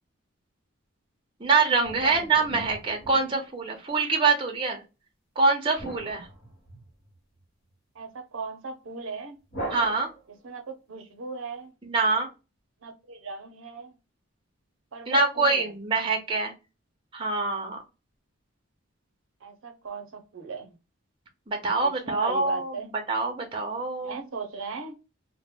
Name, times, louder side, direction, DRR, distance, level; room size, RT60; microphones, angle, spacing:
voice 1, 1.4-4.8 5.4-6.3 9.7-10.1 11.8-12.3 15.1-16.5 17.1-17.8 21.5-22.8 23.1-24.2, right 3 dB, 25° right, 0.5 m, -25 dB
sound 1, 1.8-3.9 5.8-7.2 9.5-10.5, right 1 dB, 55° left, 1.1 m, -40 dB
voice 2, 7.9-9.4 10.4-11.7 12.8-14.0 14.9-15.7 19.4-20.8 21.8-22.9 24.0-24.9, right 4 dB, 70° right, 0.6 m, -38 dB
2.1 x 2.0 x 3.5 m
head